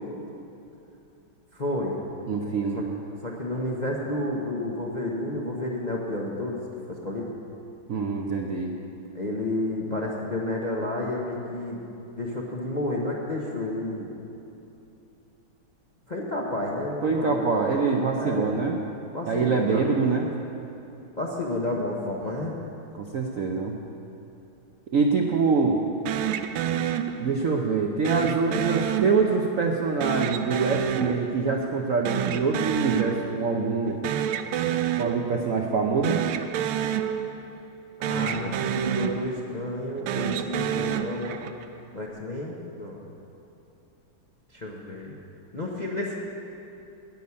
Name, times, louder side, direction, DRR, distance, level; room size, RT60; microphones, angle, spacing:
voice 1, 1.5-2.0 2.7-2.8 3.2-6.6 6.9-7.4 9.1-11.8 12.2-14.1 16.1-17.6 18.2-18.6 19.1-19.9 21.2-22.5 38.0-41.4 41.9-43.1 44.5-45.2 45.5-46.1, left 1 dB, 35° left, -2 dB, 0.7 m, -31 dB
voice 2, 2.3-2.8 7.9-8.7 17.0-18.8 19.3-20.3 22.9-23.7 24.9-25.8 27.2-34.0 35.0-36.2, right 4 dB, 65° right, 1 dB, 0.8 m, -25 dB
sound 1, 26.1-27.6 28.0-29.6 30.0-31.8 32.0-33.6 33.9-35.6 36.0-37.8 38.0-39.6 40.0-41.7, right 9 dB, 90° right, 1.4 m, -29 dB
10.5 x 7.1 x 9.5 m, 2.9 s
omnidirectional pair, 2.2 m